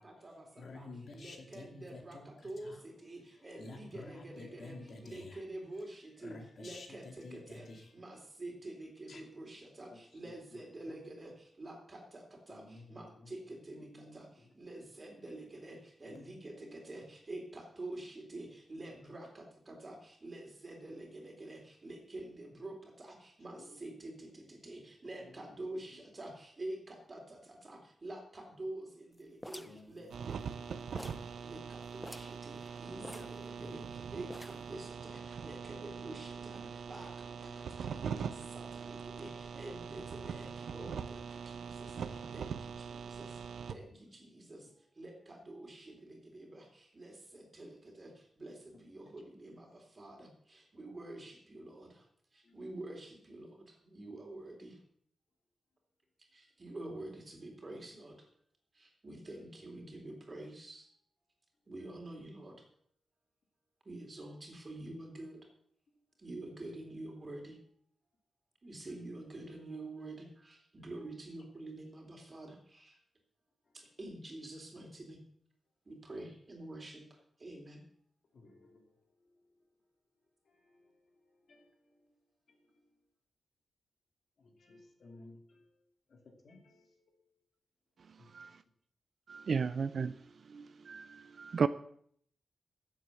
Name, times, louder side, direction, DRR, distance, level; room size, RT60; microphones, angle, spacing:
voice 1, 0.0-0.9 1.1-52.1 52.3-54.8 56.3-58.3 58.7-60.9 61.7-62.6 63.8-65.4 66.2-67.6 68.6-73.0 73.7-75.2 75.8-77.0 77.4-77.8, right 2 dB, 25° right, 2 dB, 3.5 m, -48 dB
voice 2, 0.5-2.8 3.3-5.4 6.2-7.9 9.1-9.2 9.9-10.6 10.9-11.0 12.5-13.3 13.7-14.2 16.0-16.7 23.5-23.8 25.2-25.5 29.7-30.4 32.9-34.0 36.6-36.7 37.4-37.8 52.4-52.6 78.3-79.0 80.5-81.0 81.5-82.1 82.5-82.8 84.4-85.7 86.1-87.2 88.2-88.3, left 2 dB, 55° left, 3 dB, 2.7 m, -53 dB
sound 1, 29.4-30.6 31.0-31.3 31.6-31.7 32.0-32.4 33.0-33.9 34.3-34.8, left 1 dB, 5° left, 0.5 m, -48 dB
sound 2, 30.1-43.7, right 6 dB, 80° right, 0.8 m, -42 dB
voice 3, 89.3-90.1 90.5-91.7, right 5 dB, 50° right, 14 dB, 0.4 m, -34 dB
14.5 x 7.8 x 6.9 m, 0.64 s
wide cardioid pair, 150°, 0 cm